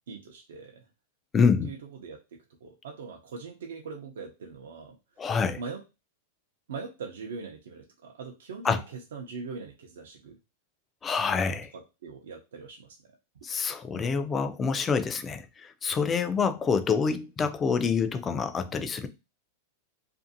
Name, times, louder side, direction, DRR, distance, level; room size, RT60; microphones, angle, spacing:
voice 1, 0.1-0.9 1.6-5.0 5.6-5.8 6.7-10.4 11.7-13.1, right 5 dB, 85° right, 0.5 m, -41 dB
voice 2, 1.3-1.7 5.2-5.6 8.6-8.8 11.0-11.7 13.4-19.1, left 5 dB, 20° left, 0.3 m, -26 dB
2.5 x 2.5 x 2.6 m
supercardioid pair, 135°, 0 cm